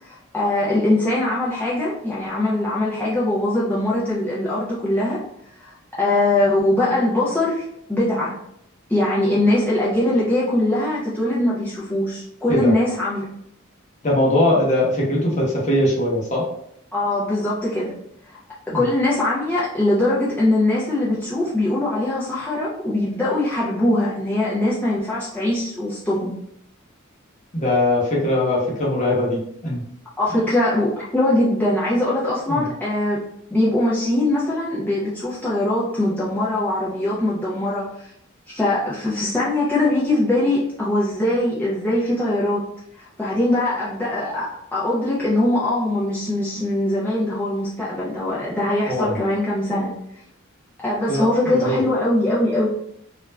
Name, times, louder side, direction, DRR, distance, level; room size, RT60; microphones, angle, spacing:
voice 1, 0.0-5.2 5.6-8.4 8.9-13.3 16.9-17.9 18.2-18.4 18.7-26.3 30.2-33.2 33.5-38.1 38.5-42.7 42.9-49.9 50.8-52.7, left 1 dB, 10° left, -8 dB, 0.4 m, -22 dB
voice 2, 14.0-16.5 18.7-18.9 27.5-29.8 30.3-30.4 32.5-32.6 48.9-49.1 51.1-51.8, left 1 dB, 35° left, -4 dB, 0.8 m, -21 dB
2.4 x 2.1 x 3.2 m, 0.74 s
head